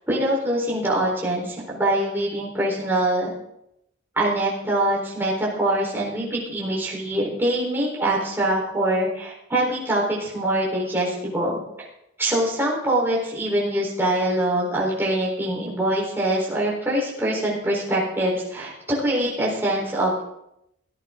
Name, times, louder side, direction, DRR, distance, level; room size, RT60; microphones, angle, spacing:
voice 1, 0.1-3.3 4.2-11.6 12.2-20.2, right 1 dB, 10° right, -5 dB, 4.1 m, -24 dB
17.5 x 14.0 x 3.8 m, 0.79 s
head